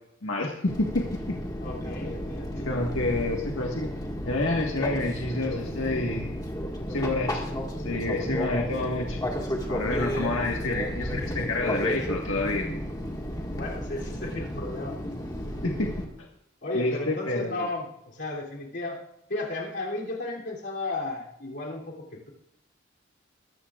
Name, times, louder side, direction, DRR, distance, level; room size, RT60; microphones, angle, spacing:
voice 1, 0.2-1.4 2.5-3.9 4.3-6.3 6.9-7.5 7.8-9.2 9.7-12.7 15.6-16.1 16.7-17.7, left 2 dB, 85° left, 0 dB, 1.6 m, -28 dB
Fixed-wing aircraft airplane, 0.7-16.0, equal, 20° left, 1.8 m, -33 dB
voice 2, 1.6-2.7 10.0-10.2 13.4-15.0 16.6-19.0 19.3-22.3, left 2 dB, 55° left, -3 dB, 3.1 m, -34 dB
22.0 x 13.5 x 2.5 m, 0.80 s
head